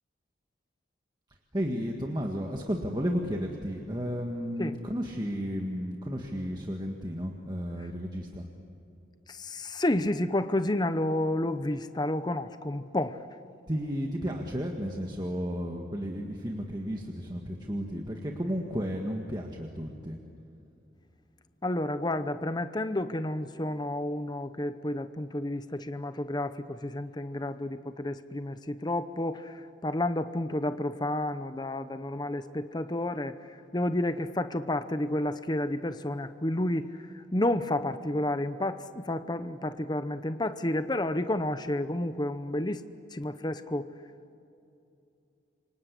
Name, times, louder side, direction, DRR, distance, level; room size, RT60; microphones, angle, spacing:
voice 1, 1.5-8.5 13.7-20.2 27.4-27.5, equal, 20° right, 1 dB, 1.7 m, -33 dB
voice 2, 9.3-13.2 21.6-42.8 43.1-43.9, left 1 dB, 20° left, 11 dB, 0.8 m, -30 dB
28.5 x 25.0 x 8.3 m, 2.7 s
head